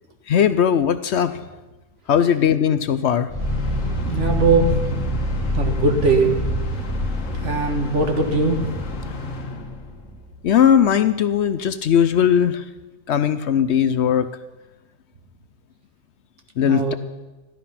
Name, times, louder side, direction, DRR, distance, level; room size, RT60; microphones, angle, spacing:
voice 1, 0.3-1.4 2.1-3.3 10.4-12.6 13.1-14.3 16.6-16.9, left 8 dB, 65° left, 12 dB, 0.9 m, -18 dB
sound 1, 3.3-10.6, left 1 dB, 25° right, 3.3 m, -27 dB
sound 2, 3.4-10.2, left 2 dB, 90° left, 1.7 m, -33 dB
voice 2, 4.1-5.0 5.5-6.4 7.3-8.8 16.6-17.0, right 3 dB, 70° right, 4 dB, 2.0 m, -20 dB
14.5 x 12.0 x 5.8 m, 1.1 s
omnidirectional pair, 1.3 m